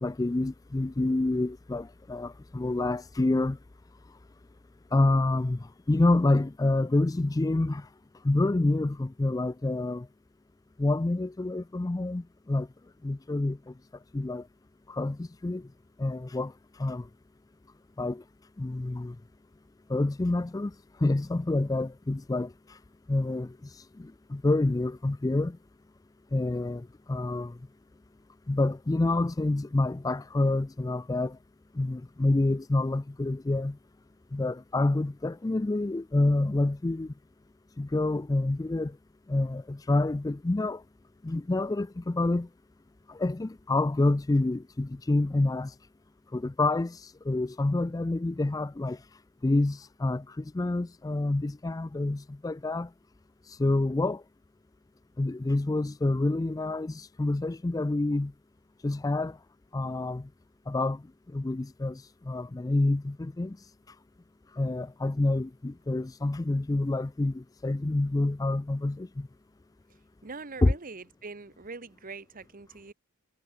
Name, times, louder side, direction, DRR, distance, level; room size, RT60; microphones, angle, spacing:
voice 1, 0.0-3.6 4.9-7.9 8.2-10.1 10.8-12.7 13.0-13.7 14.1-14.5 14.9-15.6 16.0-16.5 16.8-17.1 18.0-18.2 18.6-19.2 19.9-20.7 21.0-22.8 23.1-23.6 24.0-25.6 26.3-27.6 28.5-31.4 31.8-33.8 34.3-37.1 37.8-39.0 39.3-40.8 41.2-42.5 43.1-45.7 46.3-49.0 49.4-52.9 53.5-54.2 55.2-58.3 58.8-59.4 59.7-60.3 60.7-61.0 61.3-63.6 64.6-69.3 70.6-70.7, left 2 dB, 15° left, 0.4 m, -27 dB
voice 2, 70.2-72.9, right 4 dB, 40° right, 1.1 m, -43 dB
head